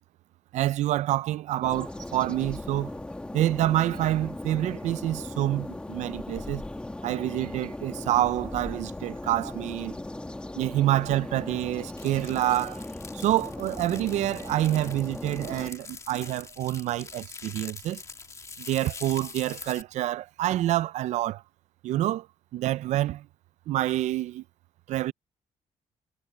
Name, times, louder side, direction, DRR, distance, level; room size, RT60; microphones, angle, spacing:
voice 1, 0.5-2.9 3.3-6.6 7.0-10.0 10.5-12.8 13.1-18.0 18.6-21.4 21.8-22.3 22.5-23.3 23.7-24.4 24.9-25.1, right 14 dB, 85° right, 0.4 m, -27 dB
sound 1, 1.6-15.7, left 2 dB, 10° left, 1.3 m, -38 dB
sound 2, 12.0-19.8, left 4 dB, 25° left, 2.4 m, -44 dB
cardioid pair, 160°, 12 cm